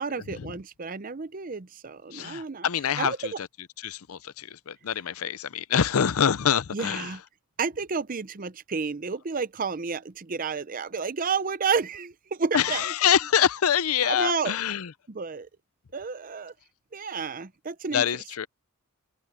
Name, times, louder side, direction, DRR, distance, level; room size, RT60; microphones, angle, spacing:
voice 1, 0.0-2.7 3.0-3.2 6.7-7.2 7.6-12.9 14.0-14.6 15.1-15.5 15.9-16.5 16.9-18.2, right 5 dB, 40° right, 0.6 m, -31 dB
voice 2, 2.1-3.5 3.8-7.1 12.5-14.9 17.9-18.5, left 8 dB, 80° left, 0.6 m, -25 dB
head